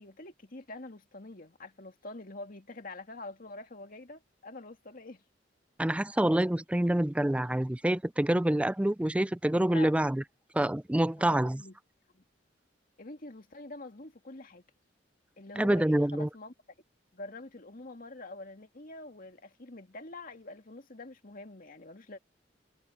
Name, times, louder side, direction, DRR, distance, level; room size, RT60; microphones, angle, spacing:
voice 1, 0.0-5.2 9.7-9.9 11.2-11.7 12.1-12.2 13.0-14.6 15.4-16.5 17.1-22.2, left 2 dB, 50° left, 2.2 m, -46 dB
voice 2, 5.8-10.2 10.5-11.6 15.6-16.3, right 1 dB, 5° right, 0.4 m, -27 dB
head